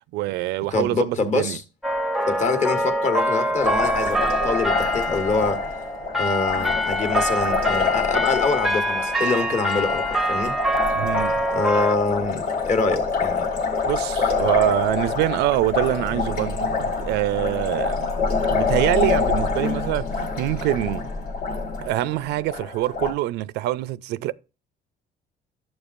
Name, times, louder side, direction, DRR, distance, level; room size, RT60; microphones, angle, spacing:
voice 1, 0.1-1.6 11.0-11.5 13.9-18.1 18.5-21.1 21.8-24.3, right 15 dB, 85° right, 0.4 m, -25 dB
voice 2, 0.7-1.6 2.3-5.6 6.2-10.6 11.5-13.5, left 4 dB, 45° left, 1.2 m, -25 dB
sound 1, 1.8-12.0, equal, ahead, 0.5 m, -25 dB
Liquid, 3.6-23.1, left 4 dB, 65° left, 1.2 m, -26 dB
11.5 x 7.0 x 2.5 m
cardioid pair, 110°, 17 cm